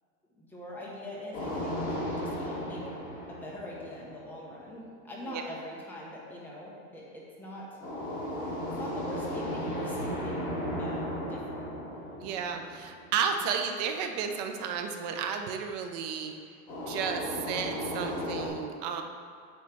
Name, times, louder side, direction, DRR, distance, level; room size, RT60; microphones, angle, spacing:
voice 1, 0.3-2.8 3.3-7.8 8.7-11.7, equal, 5° left, -5 dB, 0.9 m, -43 dB
sound 1, 1.3-4.4 7.8-13.2 16.7-18.5, equal, 20° left, 1.5 m, -35 dB
voice 2, 12.2-16.3 16.8-19.0, right 6 dB, 30° right, 5 dB, 0.4 m, -33 dB
8.4 x 3.2 x 6.0 m, 2.3 s
supercardioid pair, 165°, 42 cm